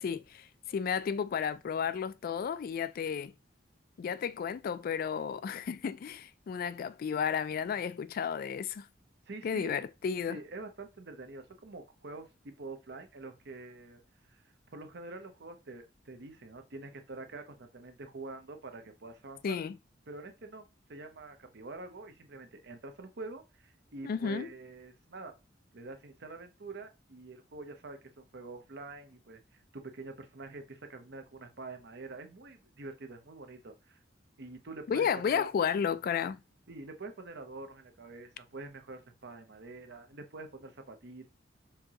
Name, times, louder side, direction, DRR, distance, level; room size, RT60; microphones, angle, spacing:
voice 1, 0.0-3.3 4.0-8.9 9.4-10.4 19.4-19.7 24.0-24.5 34.9-36.4, left 7 dB, 50° left, 0.3 m, -32 dB
voice 2, 9.3-9.8 10.3-14.0 14.3-14.4 14.7-19.6 20.1-25.3 25.7-34.0 34.4-35.5 36.7-41.3, right 3 dB, 60° right, 0.8 m, -46 dB
4.6 x 3.6 x 2.9 m
head